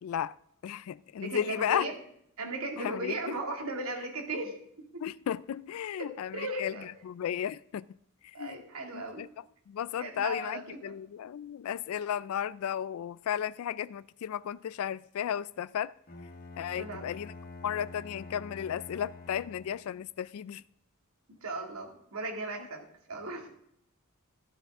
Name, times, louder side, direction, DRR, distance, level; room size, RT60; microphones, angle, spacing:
voice 1, 0.0-0.4 0.6-1.9 2.8-3.1 5.0-6.7 7.1-7.9 8.2-8.6 8.9-9.3 9.7-15.9 16.6-17.3 17.6-20.6, left 9 dB, 70° left, 0.3 m, -34 dB
voice 2, 1.2-2.0 2.4-4.5 4.9-5.0 6.0-6.9 8.3-9.3 10.0-10.9 16.7-17.1 21.3-23.5, right 2 dB, 70° right, 2.4 m, -37 dB
Bowed string instrument, 16.1-20.0, left 3 dB, 40° left, 1.5 m, -47 dB
12.5 x 12.0 x 3.6 m
head